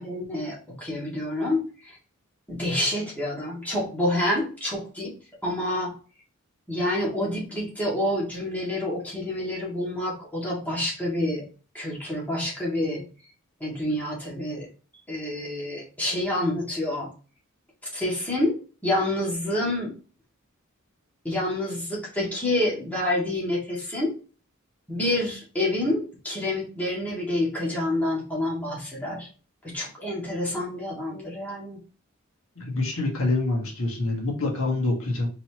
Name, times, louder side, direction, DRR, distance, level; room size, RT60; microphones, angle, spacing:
voice 1, 0.0-2.0 2.5-5.1 5.4-5.9 6.7-11.5 11.7-13.0 13.6-14.7 15.1-17.1 17.9-20.0 21.2-24.1 24.9-29.3 29.6-31.8, left 1 dB, 10° left, -6 dB, 2.0 m, -28 dB
voice 2, 32.6-35.3, left 2 dB, 80° left, -1 dB, 1.5 m, -26 dB
4.4 x 4.0 x 2.9 m, 0.36 s
head